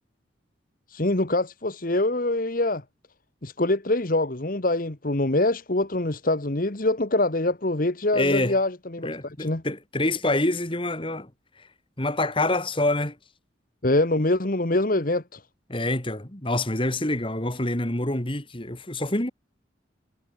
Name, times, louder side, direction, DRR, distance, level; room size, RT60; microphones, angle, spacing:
voice 1, 0.9-2.8 3.4-9.6 13.8-15.4, left 2 dB, 45° left, 1.4 m, -24 dB
voice 2, 8.1-8.6 9.0-11.3 11.6-11.7 12.0-13.2 15.7-19.3, left 1 dB, 30° left, 2.8 m, -26 dB
head